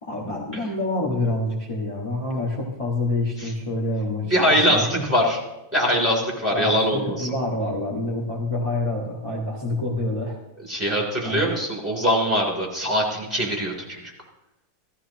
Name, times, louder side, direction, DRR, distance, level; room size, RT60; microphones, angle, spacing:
voice 1, 0.0-4.4 4.7-5.1 6.5-10.4 10.9-11.6, left 1 dB, 15° left, -4 dB, 1.9 m, -27 dB
voice 2, 4.3-5.4 5.7-7.3 10.7-14.1, equal, 5° right, -2 dB, 3.1 m, -22 dB
16.0 x 14.5 x 3.0 m, 0.94 s
omnidirectional pair, 2.3 m